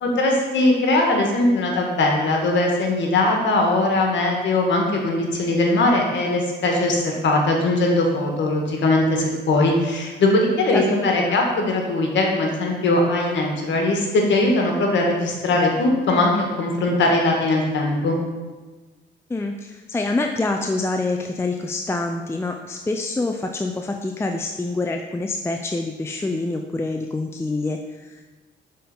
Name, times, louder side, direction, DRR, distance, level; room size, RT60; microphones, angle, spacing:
voice 1, 0.0-18.2, left 2 dB, 70° left, 0 dB, 1.6 m, -20 dB
voice 2, 10.7-11.4 19.3-28.4, left 2 dB, 15° left, 3 dB, 0.4 m, -26 dB
6.5 x 3.9 x 5.3 m, 1.3 s
cardioid pair, 90°, 20 cm